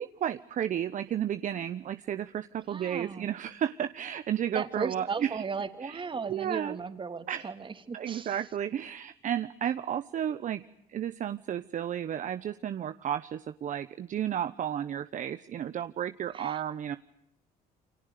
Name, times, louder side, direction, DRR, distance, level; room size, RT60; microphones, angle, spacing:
voice 1, 0.0-5.4 5.8-6.0 6.3-6.8 7.3-7.5 7.9-10.6 10.9-17.0, right 10 dB, 50° right, 12 dB, 1.0 m, -32 dB
voice 2, 2.7-3.3 4.5-8.5 16.3-16.6, right 5 dB, 30° right, 8 dB, 3.0 m, -36 dB
29.0 x 26.0 x 6.7 m, 0.76 s
cardioid pair, 110°, 17 cm